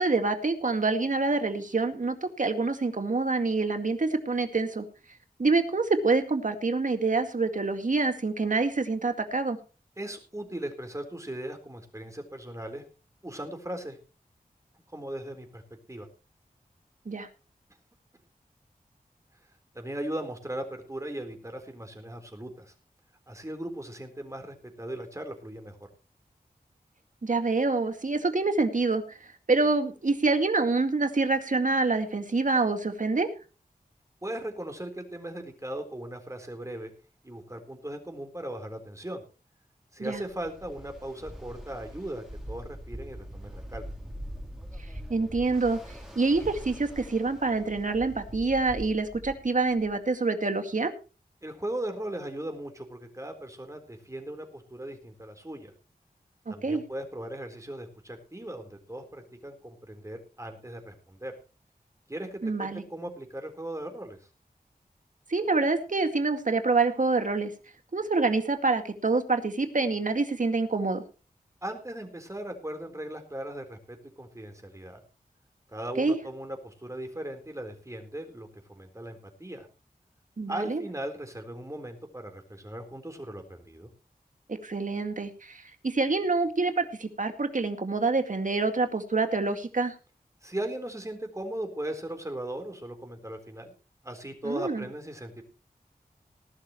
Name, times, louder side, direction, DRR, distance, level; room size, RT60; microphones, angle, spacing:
voice 1, 0.0-4.8 5.4-9.6 17.1-17.3 27.2-33.3 40.0-40.2 45.1-45.8 46.2-50.9 56.5-56.8 62.4-62.8 65.3-67.5 67.9-71.0 76.0-76.2 80.4-80.9 84.5-89.9 94.4-94.9, right 3 dB, 55° right, 7 dB, 2.1 m, -26 dB
voice 2, 10.0-12.9 13.2-14.0 14.9-15.6 15.9-16.1 19.7-22.7 23.3-25.8 34.2-36.9 37.2-39.2 39.9-43.9 51.4-55.7 56.5-61.3 62.1-64.2 71.6-75.0 75.7-79.7 80.5-83.9 90.4-93.7 94.0-95.4, right 1 dB, 20° right, 5 dB, 4.0 m, -38 dB
Ocean, 40.2-50.0, equal, 5° right, 4.0 m, -43 dB
19.0 x 12.0 x 3.1 m, 0.33 s
wide cardioid pair, 85°, 15 cm